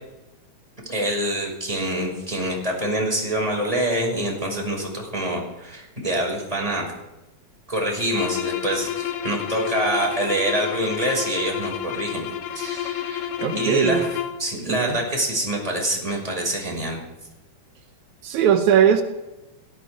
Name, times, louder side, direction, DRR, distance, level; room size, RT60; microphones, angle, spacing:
voice 1, 0.9-6.9 7.7-12.2 12.5-14.1 14.4-17.0, right 1 dB, 10° right, 0 dB, 5.6 m, -26 dB
sound 1, 8.1-14.5, left 10 dB, 85° left, 2.7 m, -30 dB
voice 2, 13.4-14.1 14.7-15.0 18.2-19.0, right 8 dB, 80° right, 6 dB, 2.4 m, -19 dB
18.0 x 15.0 x 5.0 m, 1.0 s
omnidirectional pair, 3.3 m